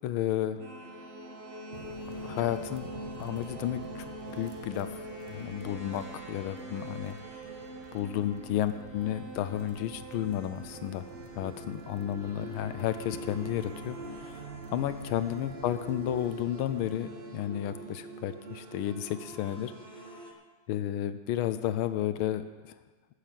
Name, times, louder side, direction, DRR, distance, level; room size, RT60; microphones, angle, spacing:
voice 1, 0.0-0.6 2.2-2.9 3.2-5.0 5.3-7.2 7.9-11.0 11.3-19.7 20.7-22.7, left 11 dB, 80° left, 12 dB, 1.4 m, -32 dB
sound 1, 0.6-20.3, right 1 dB, 35° right, 1.0 m, -43 dB
sound 2, 1.7-17.0, right 4 dB, 60° right, 0.5 m, -51 dB
14.0 x 6.7 x 7.4 m, 1.3 s
omnidirectional pair, 2.3 m